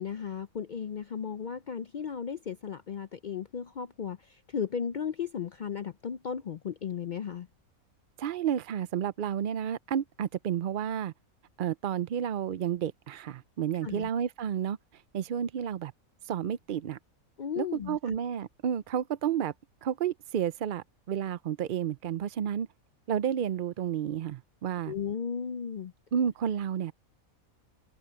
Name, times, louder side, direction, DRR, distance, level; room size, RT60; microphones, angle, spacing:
voice 1, 0.0-7.5 13.8-14.1 17.4-18.2 24.9-25.9, left 7 dB, 80° left, 0.4 m, -35 dB
voice 2, 8.2-11.1 11.6-14.8 15.1-15.9 16.2-17.0 17.6-19.5 19.8-22.7 23.1-24.9 26.1-26.9, right 9 dB, 70° right, 0.4 m, -31 dB
omnidirectional pair, 1.5 m